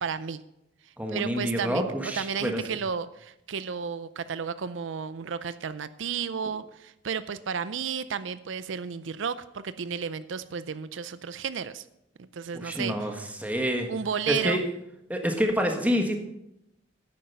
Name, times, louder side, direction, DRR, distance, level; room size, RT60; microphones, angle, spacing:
voice 1, 0.0-0.4 1.1-11.9 12.2-12.9 13.9-14.6, right 6 dB, 85° right, 14 dB, 0.5 m, -33 dB
voice 2, 1.0-2.6 12.5-13.9 14.3-14.6 15.1-16.2, equal, 10° right, 3 dB, 1.5 m, -27 dB
10.5 x 8.8 x 5.6 m, 0.83 s
head